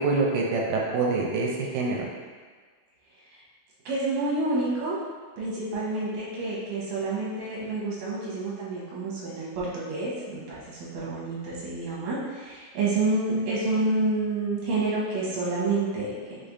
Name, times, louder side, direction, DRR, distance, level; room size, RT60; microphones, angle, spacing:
voice 1, 0.0-2.1, right 3 dB, 85° right, -2 dB, 2.2 m, -25 dB
voice 2, 3.9-5.0 5.4-16.4, right 2 dB, 65° right, -7 dB, 2.2 m, -28 dB
5.5 x 3.3 x 2.7 m, 1.5 s
omnidirectional pair, 3.9 m